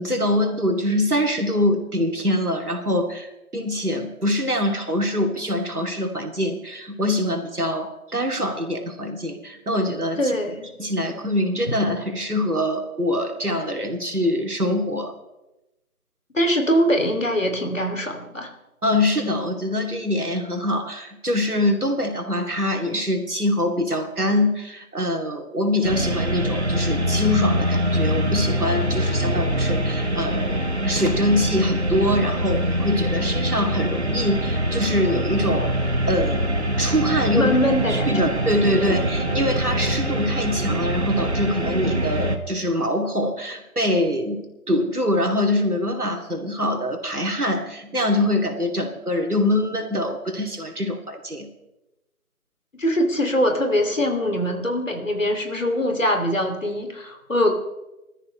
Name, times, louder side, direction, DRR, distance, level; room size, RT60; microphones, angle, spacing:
voice 1, 0.0-10.2 10.8-15.1 18.8-36.4 36.7-37.5 37.9-51.5, left 1 dB, 85° right, 3 dB, 2.9 m, -24 dB
voice 2, 10.2-10.7 16.3-18.5 37.3-38.3 38.7-38.9 52.7-57.5, equal, 60° left, 5 dB, 2.8 m, -22 dB
sound 1, 25.8-42.4, equal, 45° right, 1.4 m, -24 dB
22.0 x 13.5 x 3.3 m, 0.97 s
figure-of-eight pair, 170°, 44 cm